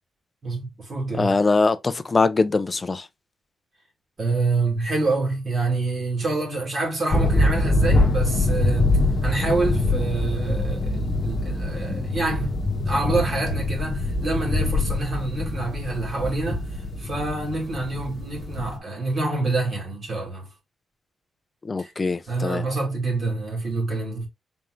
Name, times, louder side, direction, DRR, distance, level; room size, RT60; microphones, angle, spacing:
voice 1, 0.4-1.3 4.2-16.7 17.0-20.5 21.8-21.9 22.3-24.3, right 3 dB, 35° right, 2.3 m, -27 dB
voice 2, 1.2-3.1 21.6-22.6, left 3 dB, 20° left, 0.4 m, -22 dB
sound 1, 7.1-18.8, left 2 dB, 40° left, 1.0 m, -24 dB
4.3 x 3.5 x 2.5 m
wide cardioid pair, 160°, 0 cm